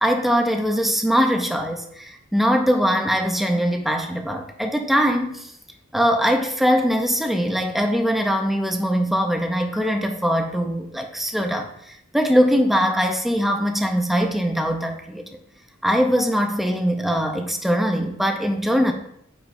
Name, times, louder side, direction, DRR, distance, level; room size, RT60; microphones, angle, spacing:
voice 1, 0.0-5.4 5.9-11.7 12.1-15.2 15.8-18.9, equal, ahead, 4 dB, 0.6 m, -21 dB
8.8 x 5.1 x 2.6 m, 0.71 s
head